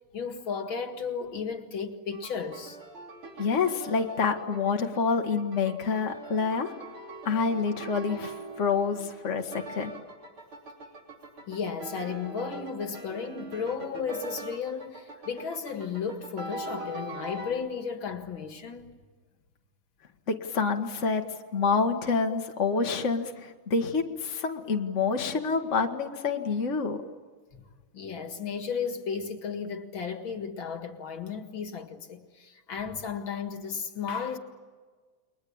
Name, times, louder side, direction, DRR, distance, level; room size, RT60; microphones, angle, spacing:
voice 1, 0.1-2.8 11.5-19.0 27.5-27.6 27.9-34.4, left 6 dB, 70° left, 2.7 m, -34 dB
sound 1, 2.1-17.5, right 2 dB, 90° right, 3.9 m, -42 dB
voice 2, 3.4-6.7 7.3-9.9 20.3-27.0, left 5 dB, 35° left, 1.9 m, -27 dB
30.0 x 22.5 x 8.8 m
omnidirectional pair, 2.2 m